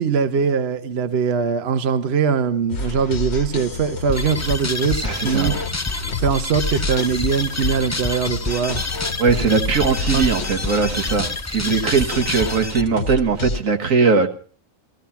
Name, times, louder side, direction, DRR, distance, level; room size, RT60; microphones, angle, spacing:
voice 1, 0.0-5.5 6.2-8.8 10.1-10.2, right 6 dB, 55° right, 1.1 m, -21 dB
sound 1, 2.7-13.6, left 3 dB, 55° left, 1.3 m, -30 dB
sound 2, 4.1-12.8, left 3 dB, 20° left, 0.4 m, -28 dB
voice 2, 5.0-5.6 9.2-14.3, right 5 dB, 80° right, 1.8 m, -20 dB
16.0 x 14.5 x 5.7 m
omnidirectional pair, 1.4 m